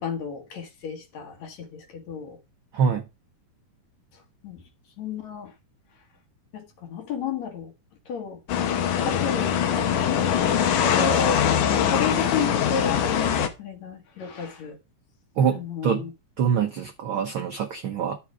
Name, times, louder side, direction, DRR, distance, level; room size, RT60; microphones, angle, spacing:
voice 1, 0.0-2.4 4.4-4.6 5.0-5.5 6.5-7.7 8.1-8.4 9.1-10.0 10.4-14.8 15.5-16.1, left 6 dB, 60° left, 2.6 m, -32 dB
voice 2, 2.7-3.0 15.4-16.1 16.4-18.2, right 7 dB, 75° right, 1.2 m, -24 dB
sound 1, 8.5-13.5, left 8 dB, 75° left, 2.7 m, -22 dB
11.5 x 6.7 x 4.8 m
omnidirectional pair, 3.8 m